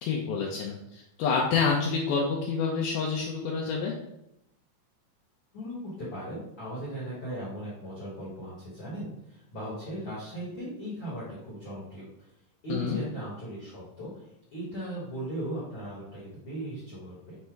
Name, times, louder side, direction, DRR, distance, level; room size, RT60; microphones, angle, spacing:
voice 1, 0.0-3.9 12.7-13.0, left 5 dB, 80° left, -2 dB, 2.1 m, -28 dB
voice 2, 5.5-12.1 12.6-14.3 14.5-17.4, right 1 dB, 55° left, -8 dB, 1.4 m, -38 dB
5.5 x 2.1 x 4.5 m, 0.81 s
omnidirectional pair, 3.9 m